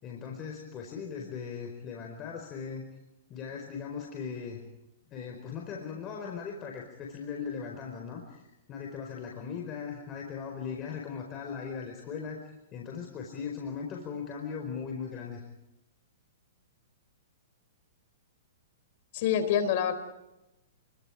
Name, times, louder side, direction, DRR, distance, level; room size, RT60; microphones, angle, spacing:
voice 1, 0.0-2.8 3.3-4.6 5.1-8.4 8.7-12.4 12.7-15.4, left 6 dB, 25° left, 2 dB, 4.7 m, -38 dB
voice 2, 19.1-19.9, left 8 dB, 50° left, 11 dB, 3.9 m, -26 dB
30.0 x 23.0 x 5.0 m, 0.96 s
hypercardioid pair, 140°, 0 cm